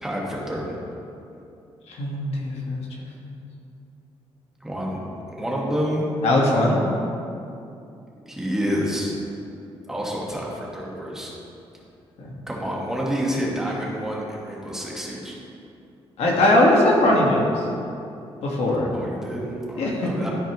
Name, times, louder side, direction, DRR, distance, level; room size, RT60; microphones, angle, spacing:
voice 1, 0.0-0.7 4.6-5.0 5.4-6.1 8.3-9.2 9.9-11.3 12.5-15.4 18.9-20.3, equal, 5° right, -4 dB, 1.4 m, -28 dB
voice 2, 1.9-2.8 3.2-3.3 6.2-6.8 12.2-12.3 16.2-17.6 18.4-18.9 19.8-20.1, left 1 dB, 75° left, -2 dB, 1.4 m, -20 dB
13.0 x 4.5 x 3.0 m, 2.7 s
cardioid pair, 120°, 10 cm